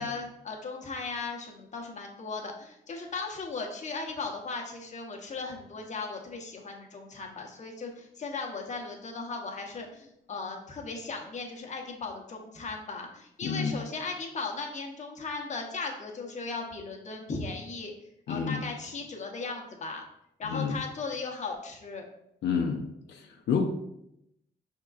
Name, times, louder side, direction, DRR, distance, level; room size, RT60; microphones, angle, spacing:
voice 1, 0.0-17.9 18.3-20.0 20.4-22.1 23.2-23.3, left 4 dB, 40° left, 2 dB, 0.9 m, -37 dB
voice 2, 13.4-13.8 18.3-18.6 20.4-20.8 22.4-23.7, left 6 dB, 80° left, 3 dB, 0.5 m, -29 dB
5.6 x 3.6 x 2.4 m, 0.79 s
cardioid pair, 110°, 18 cm